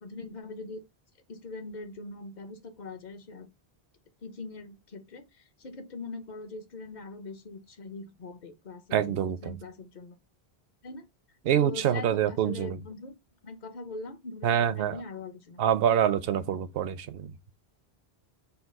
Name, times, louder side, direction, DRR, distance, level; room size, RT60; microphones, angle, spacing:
voice 1, 0.0-0.8 1.3-3.5 4.2-10.2 10.8-11.1 11.5-13.1 13.4-15.8, left 3 dB, 50° left, 0.8 m, -42 dB
voice 2, 8.9-9.5 11.4-12.8 14.4-15.0 15.6-17.3, right 9 dB, 70° right, 0.7 m, -26 dB
4.0 x 2.3 x 4.4 m
omnidirectional pair, 1.0 m